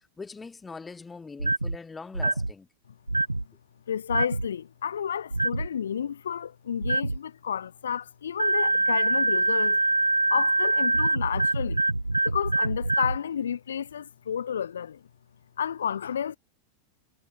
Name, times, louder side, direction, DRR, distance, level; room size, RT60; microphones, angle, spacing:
voice 1, 0.2-2.7, left 4 dB, 15° left, 5.6 m, -42 dB
sound 1, 1.4-1.8 2.1-2.5 3.1-3.4 4.1-4.5 5.3-5.7 6.8-7.2 8.4-13.2, right 2 dB, 85° right, 0.3 m, -24 dB
voice 2, 3.9-9.8 10.3-11.8 12.2-15.0 15.6-16.4, left 8 dB, 65° left, 2.7 m, -31 dB
figure-of-eight pair, 90°, 0 cm